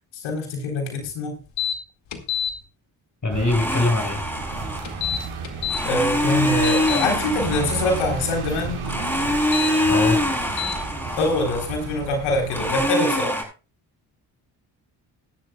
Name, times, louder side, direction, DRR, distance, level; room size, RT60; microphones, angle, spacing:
voice 1, 0.1-1.4 5.8-8.8 11.2-13.4, left 2 dB, 85° left, 2 dB, 3.9 m, -24 dB
sound 1, 1.6-1.8 2.1-2.5 4.8-5.8 6.3-7.1 9.4-9.7 10.6-10.8, left 9 dB, 65° left, 2.1 m, -27 dB
voice 2, 3.2-4.2 9.9-10.2, left 2 dB, 40° left, 3 dB, 6.2 m, -22 dB
sound 2, 3.3-12.9, right 4 dB, 85° right, 4.5 m, -33 dB
Domestic sounds home sounds, 3.5-5.1 5.7-8.4 8.8-11.9 12.5-13.4, left 1 dB, 5° left, 7.3 m, -25 dB
17.5 x 12.0 x 2.3 m, 0.33 s
supercardioid pair, 45°, 48 cm